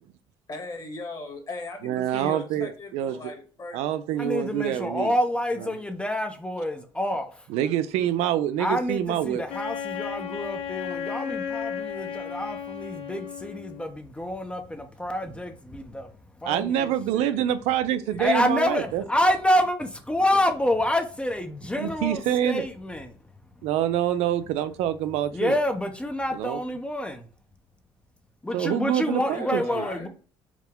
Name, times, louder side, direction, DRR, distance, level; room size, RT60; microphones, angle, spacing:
voice 1, 0.5-5.2 5.6-5.8 18.0-18.9 19.2-19.4 29.2-30.1, left 2 dB, 40° left, 1.4 m, -40 dB
voice 2, 1.8-3.3 3.7-5.1 5.6-5.7 7.5-9.4 16.4-19.0 21.8-22.7 23.6-25.6 26.3-26.6 28.5-29.8, right 11 dB, 85° right, 0.4 m, -26 dB
voice 3, 4.2-7.3 8.6-16.1 16.4-17.4 18.2-23.1 25.3-27.3 28.4-30.1, left 1 dB, 10° left, 0.6 m, -27 dB
Wind instrument woodwind instrument, 9.5-13.9, left 8 dB, 65° left, 0.8 m, -34 dB
4.7 x 2.2 x 3.5 m
cardioid pair, 90°, 11 cm